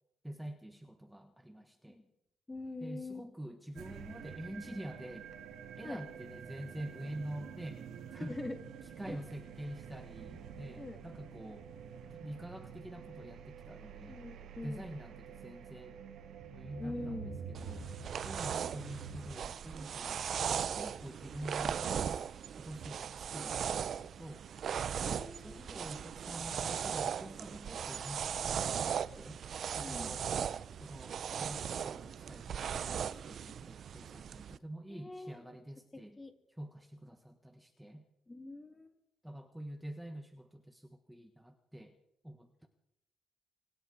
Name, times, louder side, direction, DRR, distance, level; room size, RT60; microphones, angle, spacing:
voice 1, 0.2-2.0 2.8-5.3 5.8-7.8 8.1-8.3 9.0-11.7 12.1-14.2 14.6-16.0 16.5-17.9 18.2-20.3 20.7-22.2 22.6-24.4 25.4-29.4 29.8-30.3 30.8-36.2 36.5-38.0 39.2-41.9 42.2-42.7, right 1 dB, 5° right, 6 dB, 1.4 m, -47 dB
voice 2, 2.5-3.3 5.8-6.0 8.3-8.6 9.1-9.2 10.8-11.0 14.1-15.0 16.8-17.4 20.8-20.9 25.0-25.7 29.7-30.2 34.9-35.4 35.9-36.3 38.3-38.9, left 2 dB, 20° left, 7 dB, 2.5 m, -44 dB
sound 1, 3.8-19.3, right 6 dB, 75° right, 1.9 m, -48 dB
sound 2, 17.5-34.6, right 8 dB, 60° right, 0.6 m, -38 dB
25.5 x 10.5 x 4.8 m, 0.81 s
cardioid pair, 90°, 0 cm